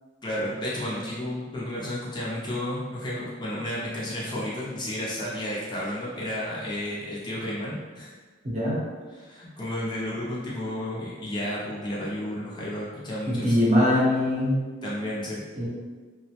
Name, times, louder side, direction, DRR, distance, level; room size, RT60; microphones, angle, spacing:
voice 1, 0.2-8.1 9.1-13.5 14.8-15.4, left 1 dB, 25° left, -6 dB, 0.4 m, -32 dB
voice 2, 8.4-8.8 13.3-14.6 15.5-15.7, left 1 dB, 35° right, -7 dB, 0.7 m, -22 dB
2.3 x 2.0 x 2.8 m, 1.4 s
head